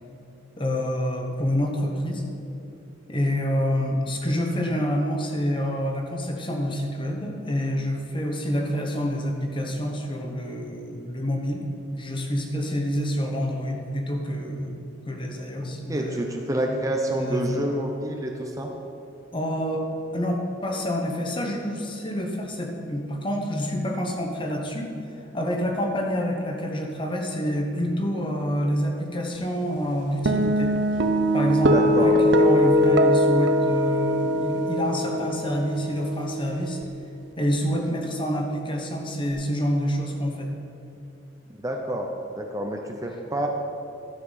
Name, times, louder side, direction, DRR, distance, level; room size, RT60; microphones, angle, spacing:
voice 1, 0.6-2.2 3.1-11.6 11.9-16.4 16.7-16.8 17.1-17.6 19.3-19.8 20.1-24.9 25.3-30.7 31.3-36.8 37.4-40.5, equal, 25° left, 2 dB, 1.1 m, -27 dB
voice 2, 15.6-18.7 31.7-32.2 41.6-42.1 42.4-43.5, right 1 dB, 20° right, 2 dB, 0.6 m, -28 dB
sound 1, 30.3-36.8, equal, 65° right, 0.6 m, -22 dB
12.0 x 5.9 x 5.7 m, 2.8 s
head